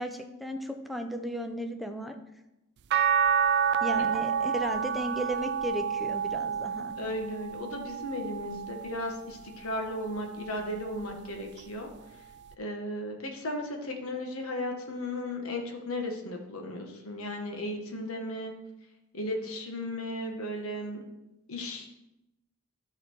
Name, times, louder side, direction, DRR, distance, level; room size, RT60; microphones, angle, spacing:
voice 1, 0.0-2.2 3.8-6.9, equal, ahead, 5 dB, 0.6 m, -35 dB
sound 1, 2.9-9.2 9.8-11.1 12.5-12.6, right 7 dB, 50° right, 0.4 m, -30 dB
voice 2, 7.0-11.9 12.6-18.5 19.1-21.0 21.5-21.9, left 1 dB, 65° left, 2 dB, 1.4 m, -35 dB
12.0 x 4.3 x 4.5 m, 0.93 s
head